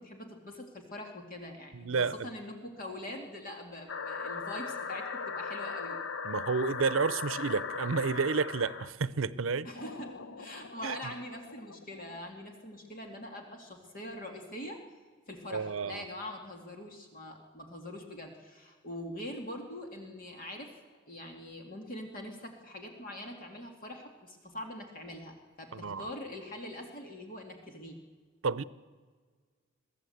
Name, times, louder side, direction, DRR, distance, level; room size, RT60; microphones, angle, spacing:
voice 1, 0.0-1.9 2.2-6.0 9.6-14.8 15.3-20.7 21.1-28.0, left 1 dB, 45° left, 2 dB, 2.2 m, -43 dB
voice 2, 1.7-2.3 6.2-9.7 10.8-11.0 15.5-16.0 25.7-26.1 28.4-28.6, right 5 dB, 75° right, 17 dB, 0.7 m, -30 dB
sound 1, 3.9-8.9 9.8-12.2, left 5 dB, 65° left, 0.8 m, -39 dB
22.5 x 15.0 x 7.9 m, 1.5 s
head